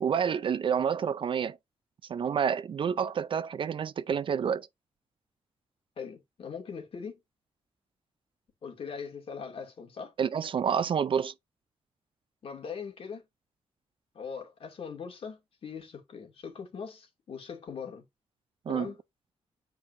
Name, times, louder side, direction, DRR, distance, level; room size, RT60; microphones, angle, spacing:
voice 1, 0.0-1.6 2.1-4.7 10.2-11.3 18.7-18.9, right 7 dB, 50° right, 0.5 m, -28 dB
voice 2, 6.0-7.2 8.6-10.1 12.4-13.2 14.1-18.0 18.7-19.0, left 6 dB, 55° left, 2.5 m, -41 dB
9.0 x 4.8 x 2.7 m
wide cardioid pair, 135°, 11 cm